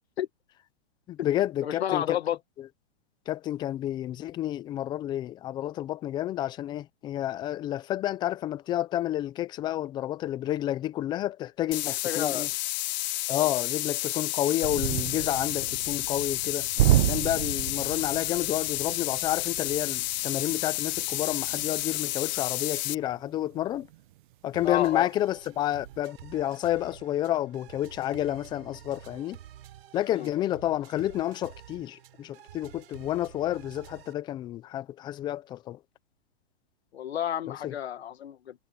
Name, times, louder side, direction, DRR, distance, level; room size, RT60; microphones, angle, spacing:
voice 1, 1.1-2.2 2.6-2.7 3.3-12.5 13.3-23.9 24.4-29.4 29.9-35.8 37.4-37.7, left 13 dB, 15° left, 0.5 m, -30 dB
voice 2, 1.6-2.4 12.0-12.5 13.3-13.5 24.6-25.1 30.2-30.3 36.9-38.5, left 10 dB, 75° left, 2.0 m, -30 dB
sound 1, 11.7-23.0, left 18 dB, 40° left, 0.9 m, -31 dB
sound 2, 14.6-24.3 24.7-24.9 25.3-26.0, right 15 dB, 50° right, 0.9 m, -32 dB
sound 3, 24.5-34.1, right 11 dB, 65° right, 6.4 m, -50 dB
hypercardioid pair, 145°, 32 cm